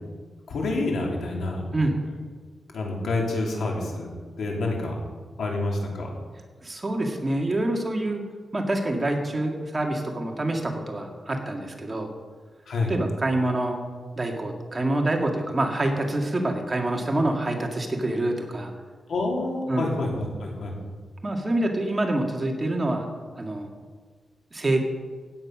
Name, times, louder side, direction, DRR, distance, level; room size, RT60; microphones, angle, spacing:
voice 1, 0.5-1.6 2.7-4.1 4.4-5.0 5.4-6.1 12.7-12.9 19.1-20.8, left 2 dB, 80° left, -1 dB, 3.5 m, -28 dB
voice 2, 6.6-8.2 8.5-12.1 12.9-13.8 14.2-18.7 19.7-19.9 21.2-23.1 23.4-23.7 24.5-24.8, right 1 dB, 25° right, 2 dB, 2.1 m, -26 dB
16.0 x 9.4 x 6.1 m, 1.5 s
wide cardioid pair, 115°, 0 cm